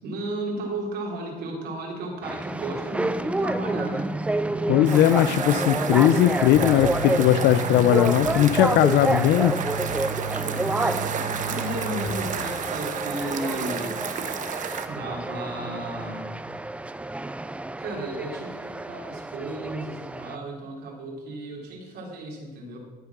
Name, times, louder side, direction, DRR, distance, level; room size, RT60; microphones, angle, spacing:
voice 1, 0.0-4.1 10.5-13.9 14.9-16.3 17.8-22.8, right 2 dB, 75° right, -1 dB, 3.5 m, -34 dB
sound 1, 2.2-20.4, right 2 dB, 5° right, 0.4 m, -29 dB
voice 2, 4.7-9.6, left 12 dB, 75° left, 11 dB, 0.5 m, -19 dB
sound 2, 4.9-14.9, right 7 dB, 50° right, 1.1 m, -32 dB
sound 3, 6.5-12.7, right 4 dB, 30° left, 1.1 m, -34 dB
14.0 x 7.4 x 6.1 m, 1.4 s
cardioid pair, 110°, 17 cm